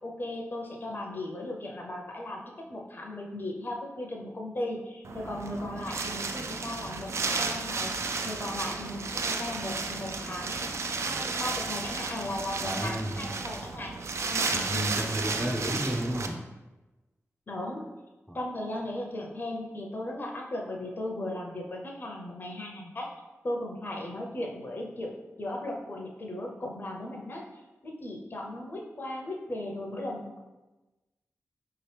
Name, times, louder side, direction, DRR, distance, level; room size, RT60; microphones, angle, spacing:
voice 1, 0.0-8.0 8.2-14.0 14.3-14.9 17.5-17.9 18.3-23.1 23.4-27.4 27.8-30.4, left 1 dB, 40° left, 0 dB, 0.6 m, -37 dB
Wind, 5.0-16.3, right 4 dB, 65° right, 0.4 m, -33 dB
voice 2, 12.6-13.3 14.5-16.4 18.3-18.4, equal, 10° right, 0 dB, 0.5 m, -32 dB
4.8 x 2.9 x 3.3 m, 1.1 s
wide cardioid pair, 135°, 5 cm